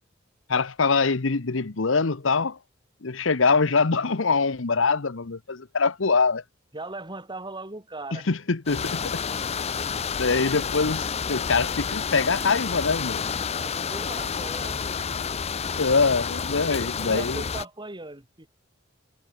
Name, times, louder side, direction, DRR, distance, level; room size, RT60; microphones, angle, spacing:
voice 1, 0.5-2.6 3.0-6.4 8.1-9.2 10.2-13.2 15.8-17.4, left 4 dB, 70° left, 1.0 m, -24 dB
voice 2, 6.7-8.3 13.5-15.1 16.8-18.5, right 2 dB, 25° right, 5.9 m, -39 dB
sound 1, 8.7-17.7, left 6 dB, 30° left, 0.6 m, -29 dB
head